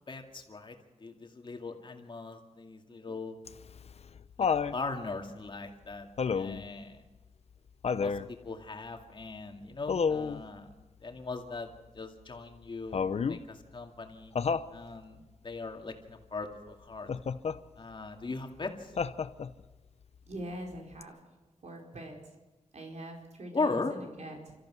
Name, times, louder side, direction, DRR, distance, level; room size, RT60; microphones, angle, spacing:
voice 1, 0.1-0.7 1.0-3.4 4.4-6.1 6.3-7.0 7.9-10.7 11.0-14.3 14.7-17.1 17.8-18.9 23.5-23.9, left 3 dB, 40° left, 3 dB, 2.3 m, -39 dB
Laughter, 3.5-4.8 6.2-6.7 7.8-8.3 9.9-10.4 12.9-13.4 14.4-14.7 17.1-17.6 19.0-19.6 21.0-21.1, left 6 dB, 60° left, 0.7 m, -30 dB
voice 2, 20.3-21.1 21.6-22.2 22.7-24.5, right 1 dB, 65° right, 1 dB, 4.7 m, -43 dB
29.5 x 14.0 x 6.3 m, 1.2 s
wide cardioid pair, 145°, 12 cm